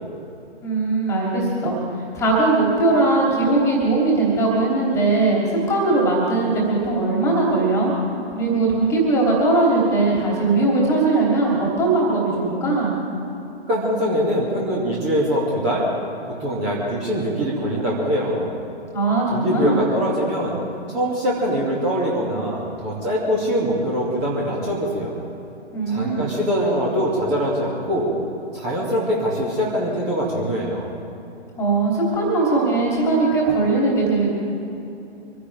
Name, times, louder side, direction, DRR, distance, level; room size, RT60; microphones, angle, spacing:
voice 1, 0.6-7.9 8.3-12.9 18.9-19.8 25.7-26.3 31.6-34.3, right 2 dB, 10° left, -3 dB, 3.1 m, -20 dB
voice 2, 13.7-15.9 16.4-18.5 19.3-20.6 20.9-25.1 25.9-28.1 28.5-30.9, equal, 20° right, -5 dB, 2.5 m, -23 dB
25.0 x 16.0 x 3.5 m, 2.8 s
figure-of-eight pair, 135°, 33 cm